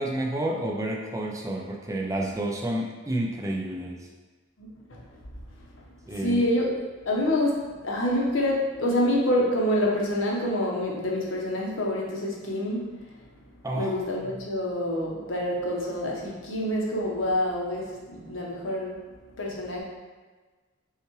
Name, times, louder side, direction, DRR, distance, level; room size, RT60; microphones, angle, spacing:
voice 1, 0.0-4.1 6.1-6.4 13.6-13.9, right 1 dB, 15° right, 0 dB, 0.5 m, -30 dB
voice 2, 4.6-5.0 6.2-6.7 7.0-7.6 7.8-12.8 13.7-19.0 19.4-19.8, left 1 dB, 70° left, -2 dB, 0.9 m, -27 dB
5.6 x 2.4 x 3.1 m, 1.3 s
head